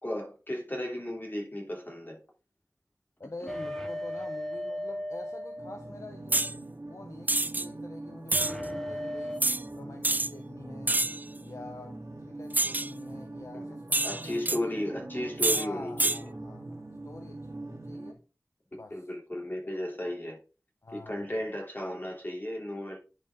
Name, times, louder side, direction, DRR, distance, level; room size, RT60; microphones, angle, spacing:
voice 1, 0.0-2.2 3.4-3.5 13.5-13.7 14.0-16.2 18.7-20.4 20.9-23.0, left 1 dB, 35° left, 3.0 m, -35 dB
voice 2, 3.2-9.4 9.7-11.0 11.4-14.8 15.5-18.2 18.7-19.0 20.8-21.4, left 2 dB, 65° left, 0.9 m, -47 dB
sound 1, 3.5-6.4 8.3-9.4, left 1 dB, 5° left, 1.2 m, -36 dB
sound 2, 5.6-18.1, right 2 dB, 60° right, 2.1 m, -43 dB
sound 3, 6.3-6.5 7.3-7.7 8.3-8.5 9.4-9.6 10.0-10.3 10.9-11.2 12.5-12.9 13.9-14.6 15.4-15.7 16.0-16.2, right 2 dB, 30° right, 0.3 m, -26 dB
10.0 x 4.8 x 3.9 m
wide cardioid pair, 50°, 6 cm